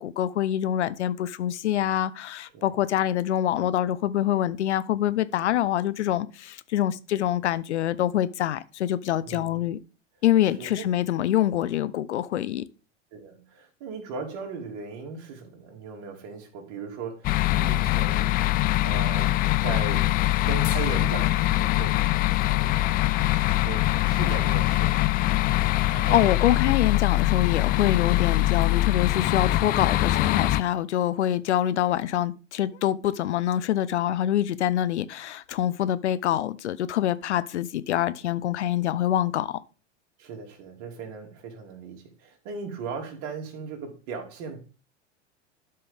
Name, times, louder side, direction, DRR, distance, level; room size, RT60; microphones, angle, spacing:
voice 1, 0.0-9.8 10.2-12.6 25.8-39.6, left 11 dB, 70° left, 0.7 m, -25 dB
voice 2, 9.2-9.6 10.6-10.8 13.1-18.4 18.8-19.3 19.6-20.1 20.4-25.3 25.9-26.3 31.3-31.4 40.2-44.6, right 5 dB, 50° right, 2.8 m, -38 dB
sound 1, 17.2-30.6, left 16 dB, 25° left, 0.4 m, -23 dB
12.0 x 5.5 x 3.5 m
hypercardioid pair, 90°, 35 cm